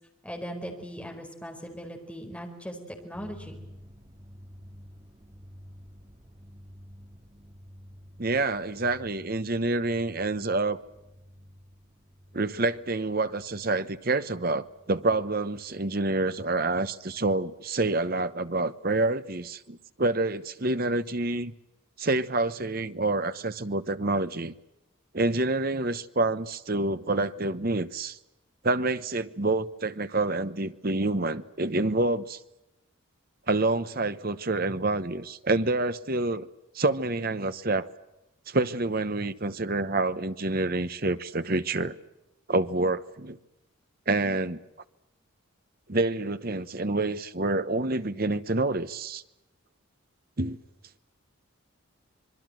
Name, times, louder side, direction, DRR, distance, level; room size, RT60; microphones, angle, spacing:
voice 1, 0.2-3.6, equal, 5° left, 4.6 m, -39 dB
sound 1, 3.1-19.2, equal, 25° right, 2.4 m, -52 dB
voice 2, 8.2-10.8 12.3-21.5 22.0-24.5 25.1-28.2 28.6-32.4 33.5-36.5 36.7-37.9 38.5-42.0 42.5-43.4 44.1-44.6 45.9-49.2 50.4-50.6, right 2 dB, 45° right, 1.0 m, -27 dB
26.0 x 22.5 x 7.8 m
head